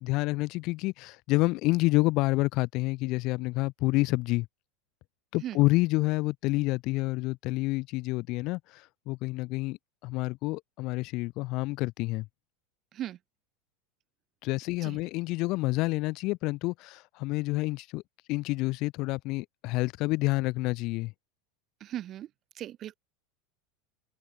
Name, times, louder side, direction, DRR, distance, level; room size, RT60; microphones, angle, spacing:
voice 1, 0.0-4.5 5.3-12.3 14.4-18.0 18.3-21.1, left 22 dB, 55° left, 0.9 m, -28 dB
voice 2, 21.8-22.3 22.6-22.9, right 12 dB, 40° right, 1.7 m, -37 dB
hypercardioid pair, 80°, 0 cm